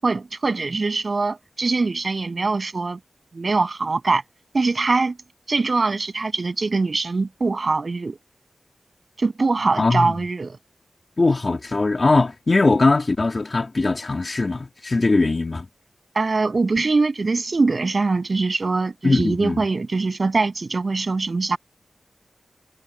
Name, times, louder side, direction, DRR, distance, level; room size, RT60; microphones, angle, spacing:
voice 1, 0.0-3.0 3.3-4.2 4.5-5.2 5.5-8.2 9.2-10.6 16.2-21.6, right 3 dB, 55° right, 7.4 m, -22 dB
voice 2, 9.8-10.2 11.2-15.7 19.0-19.6, left 3 dB, 50° left, 2.8 m, -20 dB
cardioid pair, 60°, 0 cm